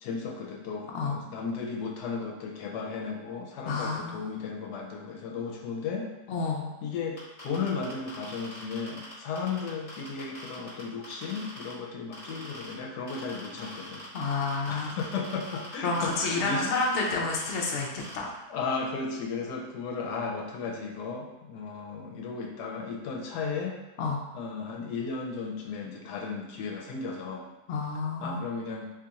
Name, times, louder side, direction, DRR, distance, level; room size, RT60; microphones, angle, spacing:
voice 1, 0.0-6.1 6.8-14.0 14.7-16.7 18.5-23.8 24.3-27.5 28.2-28.9, left 5 dB, 80° left, 0 dB, 1.1 m, -35 dB
voice 2, 3.7-4.2 6.3-6.7 14.1-15.1 15.8-17.9 18.1-18.3 24.0-24.2 27.7-28.4, left 3 dB, 60° left, -2 dB, 0.8 m, -29 dB
sound 1, 7.2-11.7 12.1-12.7 13.1-18.1, left 1 dB, 25° left, 1.1 m, -44 dB
2.8 x 2.4 x 3.9 m, 1.0 s
omnidirectional pair, 1.8 m